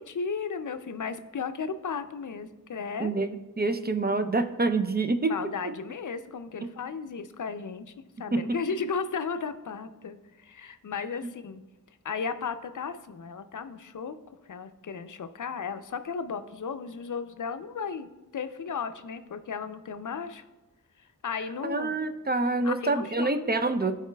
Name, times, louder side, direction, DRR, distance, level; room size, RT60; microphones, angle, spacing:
voice 1, 0.0-3.1 5.3-7.9 8.2-11.6 12.0-14.2 14.5-20.4 21.2-21.9 22.6-23.5, left 5 dB, 65° left, 10 dB, 0.5 m, -35 dB
voice 2, 3.6-5.3 8.3-8.4 21.6-24.0, right 3 dB, 30° right, 8 dB, 0.5 m, -26 dB
14.5 x 4.9 x 2.2 m, 1.1 s
wide cardioid pair, 60°, 33 cm